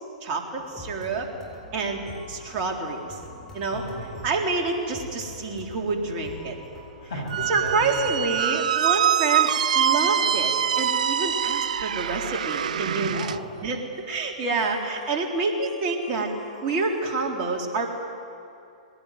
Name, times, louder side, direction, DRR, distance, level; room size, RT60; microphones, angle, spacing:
voice 1, 0.2-1.3 1.7-3.0 3.5-3.8 4.2-6.6 7.5-13.2 13.6-16.3 16.6-17.9, right 3 dB, 35° right, 0 dB, 3.9 m, -28 dB
sound 1, 0.6-17.1, left 1 dB, 10° left, 7.1 m, -46 dB
voice 2, 3.7-4.3 7.0-8.2 13.1-13.6, left 1 dB, 60° left, 1 dB, 7.5 m, -36 dB
Squeak, 7.3-13.4, right 9 dB, 70° right, 0.7 m, -24 dB
21.5 x 18.5 x 9.5 m, 2.7 s
hypercardioid pair, 115°, 4 cm